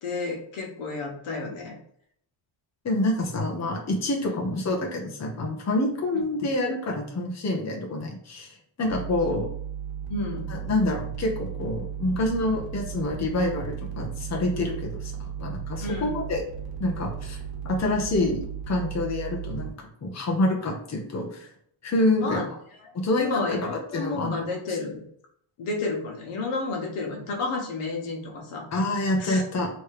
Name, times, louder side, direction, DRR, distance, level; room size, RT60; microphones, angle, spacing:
voice 1, 0.0-1.7 4.3-4.4 6.1-6.2 10.1-10.5 15.8-16.1 22.2-22.5 22.8-25.0 25.6-28.6 29.2-29.4, left 3 dB, 85° left, 0 dB, 1.3 m, -31 dB
voice 2, 2.8-9.5 10.5-16.4 16.8-17.4 17.6-19.7 20.0-21.5 21.8-22.4 22.9-24.4 24.7-24.8 28.7-29.7, left 1 dB, 35° left, 0 dB, 1.0 m, -27 dB
sound 1, 8.8-19.7, right 8 dB, 60° right, 1.2 m, -35 dB
3.3 x 3.1 x 4.8 m, 0.66 s
cardioid pair, 140°, 49 cm